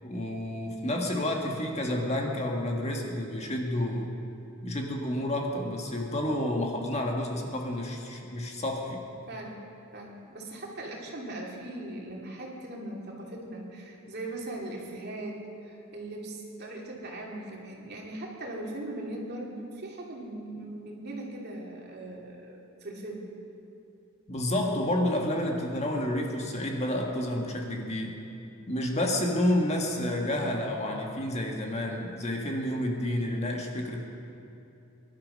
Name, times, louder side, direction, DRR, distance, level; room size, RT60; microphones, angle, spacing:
voice 1, 0.0-4.1 4.6-9.0 24.3-28.2 28.7-34.0, left 1 dB, 30° left, 1 dB, 1.6 m, -30 dB
voice 2, 9.3-9.6 9.9-23.3, right 1 dB, 50° right, -2 dB, 2.8 m, -39 dB
23.0 x 11.5 x 5.4 m, 2.8 s
head